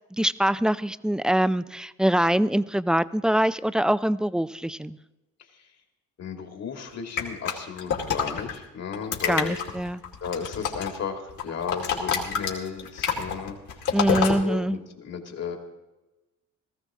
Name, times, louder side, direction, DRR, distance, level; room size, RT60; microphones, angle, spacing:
voice 1, 0.2-5.0 9.3-10.0 13.9-14.8, right 1 dB, 5° right, 15 dB, 0.4 m, -24 dB
voice 2, 6.2-9.6 10.2-15.6, left 6 dB, 60° left, 3 dB, 2.4 m, -35 dB
sound 1, 7.2-8.5 8.9-11.0 11.3-14.4, left 7 dB, 75° left, 2.5 m, -27 dB
17.5 x 14.5 x 3.6 m, 1.1 s
cardioid pair, 90°, 30 cm